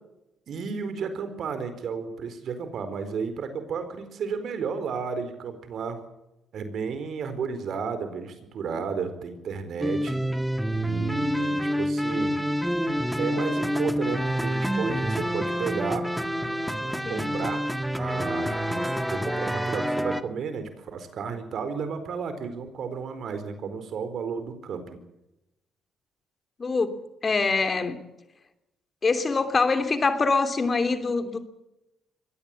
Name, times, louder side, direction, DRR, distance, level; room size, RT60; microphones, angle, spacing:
voice 1, 0.5-6.0 6.5-10.2 10.8-12.4 13.2-16.0 17.1-17.6 18.0-25.0, right 5 dB, 65° right, 10 dB, 4.6 m, -33 dB
sound 1, 9.8-20.2, equal, 5° right, 1.8 m, -27 dB
voice 2, 26.6-28.0 29.0-31.4, left 4 dB, 35° left, 9 dB, 3.0 m, -24 dB
23.5 x 18.5 x 8.5 m, 0.91 s
cardioid pair, 90°, 0 cm